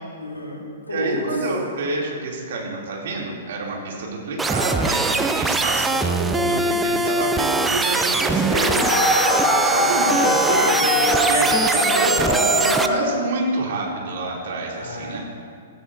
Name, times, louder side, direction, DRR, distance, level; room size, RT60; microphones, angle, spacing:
voice 1, 0.2-1.2 9.3-9.7 14.7-15.2, left 2 dB, 85° left, -3 dB, 3.4 m, -32 dB
voice 2, 0.9-8.9 9.2-15.2, right 2 dB, 55° right, -2 dB, 2.8 m, -28 dB
sound 1, 4.4-12.9, right 3 dB, 10° right, 0.6 m, -22 dB
sound 2, 8.4-13.3, left 1 dB, 15° left, 2.5 m, -21 dB
16.5 x 12.5 x 2.7 m, 2.1 s
figure-of-eight pair, 110°, 0 cm